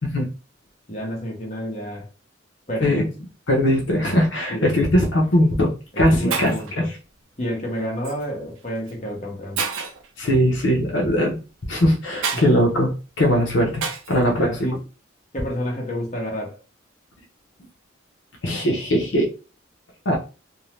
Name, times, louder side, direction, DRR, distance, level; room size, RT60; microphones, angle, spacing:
voice 1, 0.9-2.1 2.7-3.1 4.5-4.8 5.9-6.9 7.4-9.6 12.3-12.4 14.1-14.8 15.3-16.6, equal, 35° left, 0.9 m, -30 dB
voice 2, 3.5-6.8 10.2-11.4 11.7-12.9 13.2-14.7 18.4-19.3 20.1-20.2, equal, 65° left, 0.6 m, -20 dB
Shatter, 5.1-5.3 6.0-6.1 6.3-6.8 8.0-8.3 8.9-9.0 9.6-10.1 12.2-12.5 13.8-14.2, right 6 dB, 85° right, 0.5 m, -28 dB
2.6 x 2.0 x 3.0 m
head